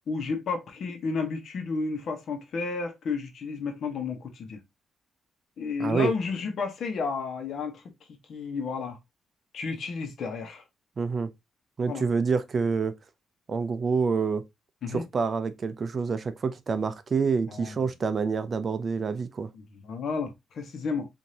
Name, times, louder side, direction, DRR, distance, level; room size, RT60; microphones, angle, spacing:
voice 1, 0.1-4.6 5.6-7.8 8.1-9.0 9.5-10.6 11.9-12.0 14.8-15.0 17.5-17.9 19.5-21.1, left 4 dB, 60° left, 1.1 m, -32 dB
voice 2, 5.8-6.1 11.0-11.3 11.8-12.9 13.5-14.4 14.9-19.5, right 5 dB, 40° right, 0.5 m, -27 dB
5.0 x 2.7 x 2.8 m
cardioid pair, 120°, 0 cm